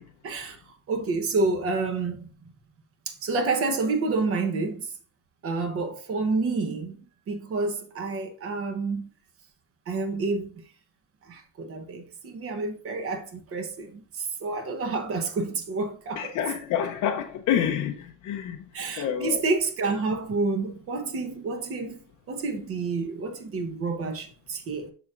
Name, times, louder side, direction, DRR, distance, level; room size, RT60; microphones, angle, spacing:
voice 1, 0.2-0.6 0.9-2.3 3.1-4.9 5.4-9.1 9.9-10.6 11.3-16.4 18.7-22.0 22.3-24.9, right 3 dB, 35° right, 1.0 m, -29 dB
voice 2, 16.2-18.6 19.0-19.4, left 9 dB, 45° left, 0.6 m, -28 dB
6.9 x 6.3 x 2.5 m
cardioid pair, 155°, 39 cm